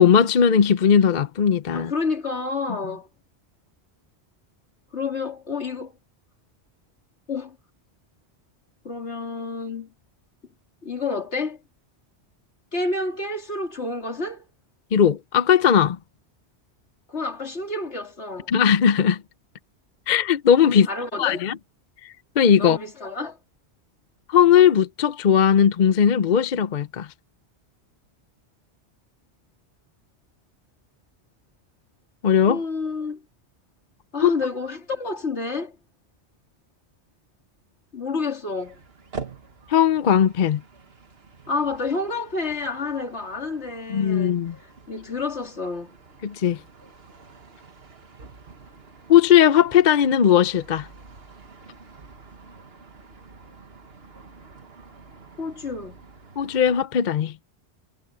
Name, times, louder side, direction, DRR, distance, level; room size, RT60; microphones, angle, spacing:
voice 1, 0.0-1.9 14.9-16.0 18.5-19.2 20.1-20.9 21.2-21.6 22.0-22.8 24.3-27.1 32.2-32.6 34.2-34.3 39.7-40.6 43.9-44.6 46.2-46.6 49.1-50.9 56.4-57.3, left 8 dB, 50° left, 0.7 m, -18 dB
voice 2, 1.7-3.1 4.9-5.9 7.3-7.6 8.8-9.9 10.8-11.6 12.7-14.4 17.1-18.5 20.6-21.4 22.6-23.4 32.5-33.2 34.1-35.8 37.9-38.8 41.5-44.4 44.9-46.0 55.4-56.0, left 3 dB, 80° left, 3.1 m, -29 dB
sound 1, 38.6-56.9, right 4 dB, 65° right, 1.9 m, -46 dB
omnidirectional pair, 1.1 m